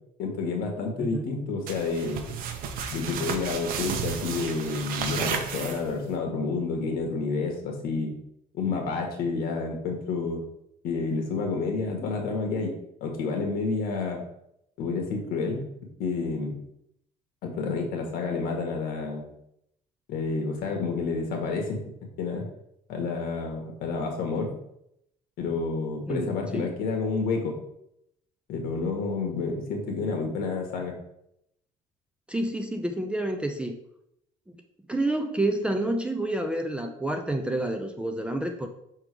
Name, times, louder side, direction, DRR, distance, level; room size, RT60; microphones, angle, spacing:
voice 1, 0.2-2.2 2.9-8.1 8.5-10.4 10.8-14.2 14.8-15.6 16.0-16.6 17.4-19.3 20.1-21.8 22.2-22.4 22.9-24.5 25.4-27.6 28.5-31.0, left 4 dB, 70° left, 2 dB, 1.6 m, -29 dB
sound 1, 1.7-6.1, right 6 dB, 65° right, 0.8 m, -33 dB
voice 2, 26.1-26.7 32.3-33.8 34.5-34.6 34.9-38.7, right 1 dB, 5° right, 5 dB, 0.4 m, -29 dB
6.0 x 3.7 x 4.9 m, 0.77 s
cardioid pair, 160°, 16 cm